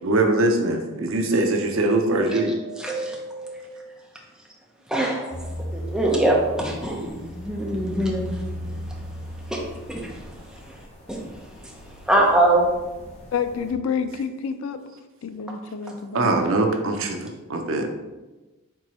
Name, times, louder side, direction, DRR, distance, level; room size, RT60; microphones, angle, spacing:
voice 1, 0.0-2.5 16.1-18.0, right 2 dB, 75° right, 4 dB, 0.6 m, -22 dB
voice 2, 2.2-3.7 4.9-5.4 5.7-8.4 9.5-9.6 9.9-10.3 10.7-10.8 11.1-11.2 11.6-11.7 12.1-12.7, right 1 dB, 5° right, -3 dB, 0.7 m, -24 dB
sound 1, 5.3-13.7, equal, 35° left, 0.8 m, -37 dB
voice 3, 13.3-14.8 15.2-16.4, left 6 dB, 85° left, 10 dB, 0.4 m, -28 dB
4.6 x 3.7 x 3.0 m, 1.2 s
head